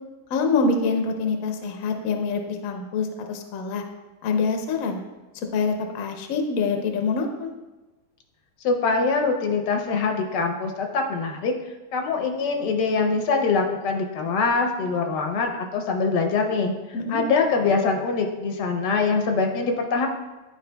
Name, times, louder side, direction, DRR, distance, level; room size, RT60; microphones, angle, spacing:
voice 1, 0.3-3.8 4.2-5.0 5.5-7.5 16.9-17.2, left 4 dB, 65° left, 4 dB, 1.0 m, -25 dB
voice 2, 8.6-11.5 11.9-16.7 17.1-20.1, left 4 dB, 85° left, 3 dB, 1.4 m, -23 dB
10.5 x 4.8 x 2.2 m, 1.1 s
omnidirectional pair, 1.8 m